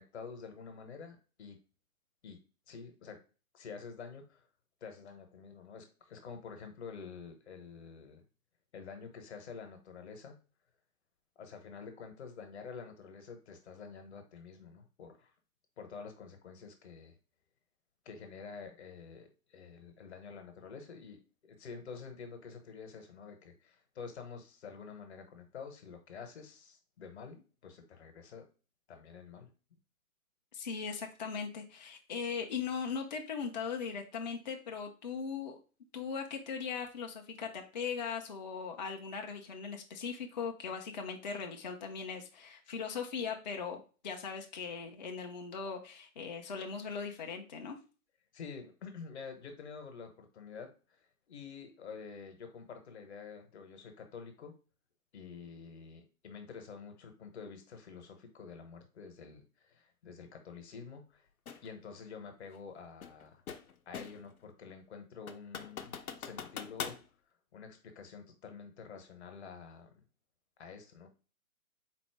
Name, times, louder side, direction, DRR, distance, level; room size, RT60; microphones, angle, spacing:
voice 1, 0.0-1.6 2.2-2.4 2.7-3.2 3.5-4.5 4.8-8.2 8.7-10.4 11.4-15.3 15.8-17.2 18.0-28.5 28.9-29.5 48.3-54.5 55.1-61.3 61.6-63.4 63.9-67.0 67.5-69.9 70.6-71.1, left 5 dB, 50° left, 6 dB, 1.0 m, -48 dB
voice 2, 30.5-35.6 35.9-47.8, left 6 dB, 30° left, 3 dB, 0.5 m, -39 dB
sound 1, 61.5-61.7 63.0-64.3 64.7-64.8 65.3-67.0, left 7 dB, 75° left, 0.7 m, -42 dB
4.1 x 2.0 x 4.5 m, 0.35 s
hypercardioid pair, 145°, 44 cm